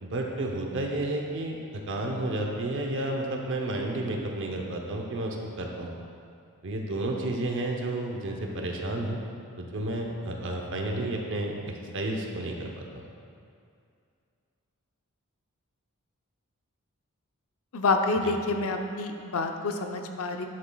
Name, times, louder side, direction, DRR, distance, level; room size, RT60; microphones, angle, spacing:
voice 1, 0.0-5.9 6.6-9.2 9.5-12.7 18.2-18.3, right 1 dB, 60° right, 1 dB, 0.7 m, -31 dB
voice 2, 17.7-20.5, left 3 dB, 70° left, 5 dB, 0.6 m, -28 dB
10.5 x 7.0 x 2.3 m, 2.4 s
head